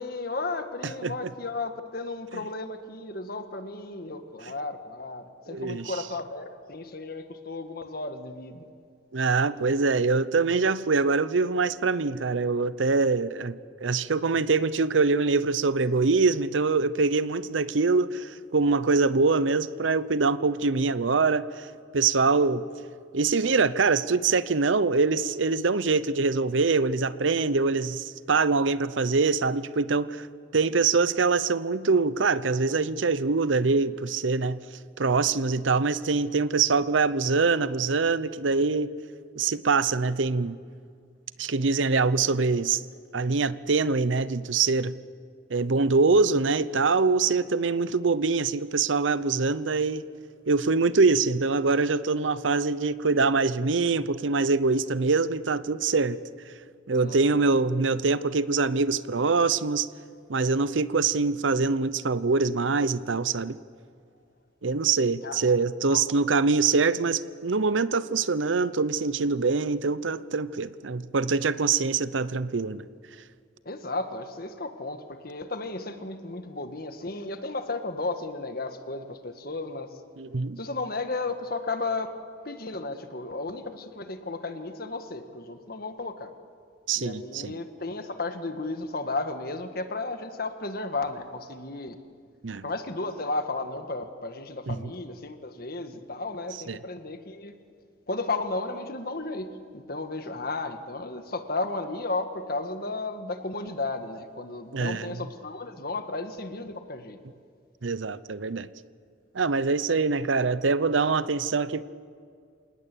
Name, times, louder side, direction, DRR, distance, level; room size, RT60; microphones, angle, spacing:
voice 1, 0.0-8.6 56.9-57.4 65.2-65.5 65.8-66.0 73.6-79.9 80.6-82.1 82.4-86.3 87.0-92.0 92.6-97.5 98.1-107.2, left 3 dB, 50° left, 7 dB, 1.7 m, -34 dB
voice 2, 0.8-1.1 5.5-5.9 9.1-21.7 21.9-22.6 23.1-30.3 30.5-34.6 35.0-38.9 39.4-40.6 41.4-42.8 43.1-44.9 45.5-50.0 50.5-56.2 56.9-59.9 60.3-63.6 64.6-72.9 80.2-80.6 86.9-87.6 92.4-92.6 94.7-94.8 96.7-96.8 104.7-105.2 107.8-108.7 109.3-111.8, right 4 dB, 90° right, 16 dB, 0.7 m, -24 dB
27.0 x 19.0 x 8.5 m, 2.2 s
head